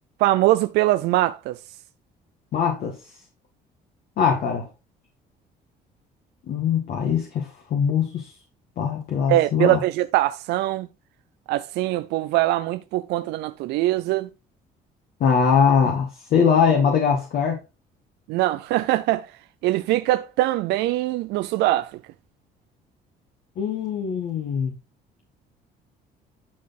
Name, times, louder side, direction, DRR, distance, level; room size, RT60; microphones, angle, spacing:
voice 1, 0.2-1.6 9.3-10.9 11.5-14.3 18.3-19.3 19.6-22.0, right 16 dB, 90° right, 0.6 m, -22 dB
voice 2, 2.5-3.0 4.2-4.7 6.5-8.3 8.8-9.8 15.2-17.6 23.6-24.7, left 6 dB, 65° left, 2.1 m, -21 dB
11.0 x 4.3 x 4.2 m
cardioid pair, 110°, 17 cm